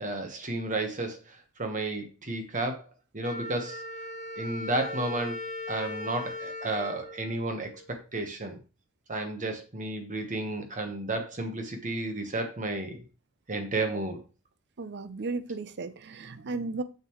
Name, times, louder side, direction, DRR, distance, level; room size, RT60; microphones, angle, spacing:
voice 1, 0.0-2.8 3.1-3.8 4.4-5.4 5.7-8.6 9.1-13.0 13.5-14.2, right 2 dB, 35° right, 1.2 m, -32 dB
Wind instrument woodwind instrument, 3.2-8.0, left 2 dB, 35° left, 0.8 m, -39 dB
voice 2, 14.8-16.8, right 3 dB, 50° right, 0.6 m, -35 dB
6.7 x 6.6 x 3.1 m
head